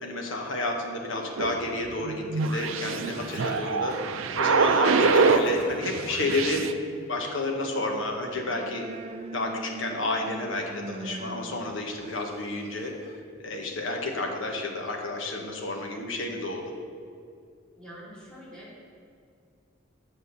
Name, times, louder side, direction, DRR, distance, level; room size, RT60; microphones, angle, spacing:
voice 1, 0.0-3.9 4.3-6.6 7.1-8.8 9.3-13.1 13.4-16.7, left 2 dB, 70° left, 1 dB, 1.3 m, -30 dB
sound 1, 1.4-5.5 5.8-6.7, right 4 dB, 85° right, 0.5 m, -25 dB
Toilet flush, 2.5-5.9, left 1 dB, 50° left, 1.8 m, -40 dB
voice 2, 6.7-7.5 17.7-18.8, equal, 5° left, -7 dB, 2.6 m, -47 dB
sound 2, 8.0-13.2, right 3 dB, 30° right, 0.3 m, -42 dB
8.2 x 6.0 x 6.8 m, 2.3 s
head